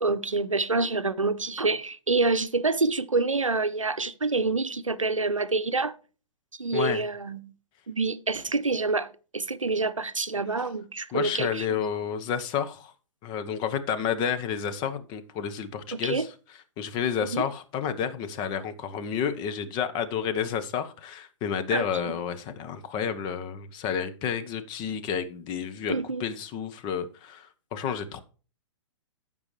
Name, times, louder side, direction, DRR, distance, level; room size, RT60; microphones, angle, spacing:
voice 1, 0.0-6.0 6.6-7.5 7.9-11.8 15.9-16.3 17.2-17.5 21.7-22.1 25.9-26.2, right 3 dB, 85° right, 0.7 m, -27 dB
voice 2, 6.7-7.1 11.1-12.9 13.2-16.3 16.8-25.9 26.2-28.2, left 7 dB, 30° left, 1.0 m, -30 dB
15.0 x 5.4 x 3.2 m
figure-of-eight pair, 110°, 16 cm